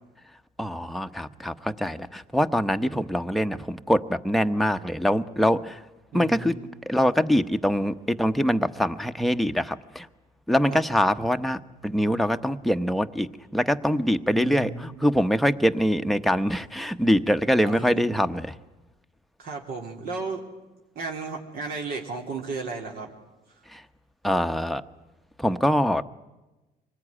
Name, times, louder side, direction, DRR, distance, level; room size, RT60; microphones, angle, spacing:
voice 1, 0.6-5.8 6.1-6.5 6.9-10.1 10.5-18.5 23.7-23.8 24.2-24.8 25.4-26.0, equal, ahead, 7 dB, 1.0 m, -24 dB
voice 2, 6.1-6.7 10.7-10.8 14.3-15.0 17.6-18.2 19.4-20.4 21.0-23.1, right 4 dB, 65° right, 1 dB, 3.5 m, -34 dB
25.0 x 19.5 x 9.9 m, 1.1 s
cardioid pair, 110°, 17 cm